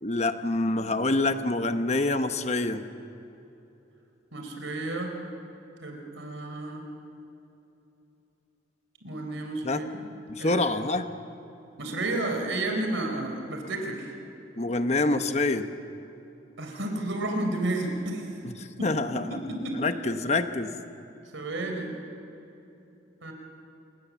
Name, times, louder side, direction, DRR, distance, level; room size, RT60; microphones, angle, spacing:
voice 1, 0.0-2.8 9.6-9.8 10.3-11.1 14.6-15.7 18.4-19.4 19.7-20.7, left 2 dB, 35° left, 9 dB, 1.0 m, -26 dB
voice 2, 4.3-5.2 5.8-6.8 9.0-10.0 10.4-10.6 11.8-14.1 16.6-18.3 18.8-18.9 19.5-19.8 21.3-21.9 23.2-23.3, right 2 dB, 85° right, 3 dB, 4.0 m, -31 dB
28.0 x 19.0 x 7.3 m, 2.9 s
head